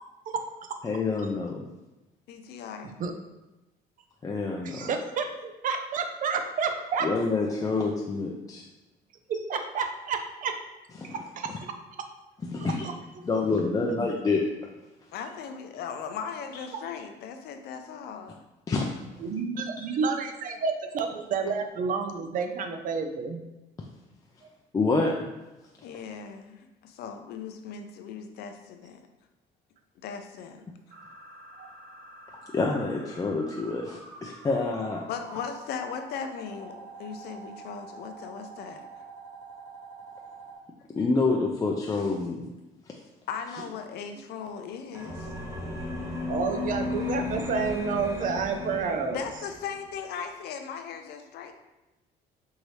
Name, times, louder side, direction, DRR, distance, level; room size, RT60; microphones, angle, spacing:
voice 1, 0.8-1.6 4.2-4.9 7.0-8.6 11.0-11.1 12.5-12.9 13.2-14.4 18.7-18.9 24.7-25.3 32.5-35.0 41.0-42.5, left 3 dB, 20° left, -1 dB, 0.4 m, -27 dB
voice 2, 2.3-2.9 15.1-18.4 25.8-29.0 30.0-30.6 35.1-38.8 43.3-45.3 49.1-51.5, left 6 dB, 75° left, 6 dB, 0.5 m, -38 dB
voice 3, 2.8-3.1 4.6-7.1 9.3-10.6 11.0-11.5 12.6-12.9 13.8-13.9 16.7-16.8 19.2-23.4 31.6-31.7 46.3-49.2, right 5 dB, 50° right, 6 dB, 0.5 m, -30 dB
sound 1, 30.9-40.6, right 3 dB, 75° right, 0.9 m, -47 dB
sound 2, 44.9-49.6, left 2 dB, 20° right, 1.0 m, -34 dB
4.7 x 2.7 x 3.1 m, 1.0 s
cardioid pair, 110°, 17 cm